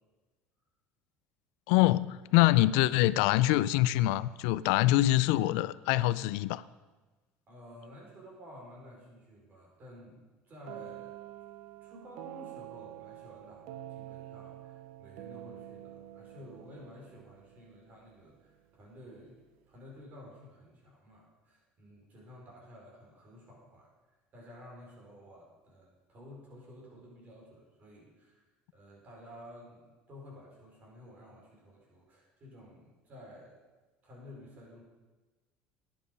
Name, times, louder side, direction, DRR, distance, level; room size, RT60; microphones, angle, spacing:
voice 1, 1.7-6.6, left 16 dB, 80° left, 17 dB, 0.3 m, -25 dB
voice 2, 7.5-11.2 11.8-19.4 19.7-23.9 24.3-28.4 28.7-33.6 34.0-34.8, left 1 dB, 40° right, -2 dB, 4.8 m, -52 dB
sound 1, 10.7-18.4, right 14 dB, 85° right, 0.6 m, -47 dB
11.0 x 10.0 x 5.3 m, 1.2 s
supercardioid pair, 115°, 4 cm